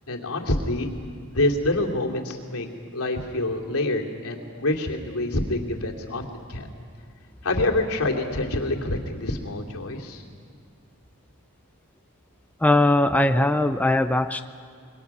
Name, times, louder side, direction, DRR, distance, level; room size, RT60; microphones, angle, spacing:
voice 1, 0.1-0.9 1.3-2.7 2.9-6.7 7.4-10.2, left 2 dB, 80° left, 1 dB, 2.7 m, -26 dB
voice 2, 12.6-14.4, left 1 dB, 5° left, 8 dB, 0.4 m, -20 dB
27.0 x 23.0 x 6.0 m, 2.4 s
head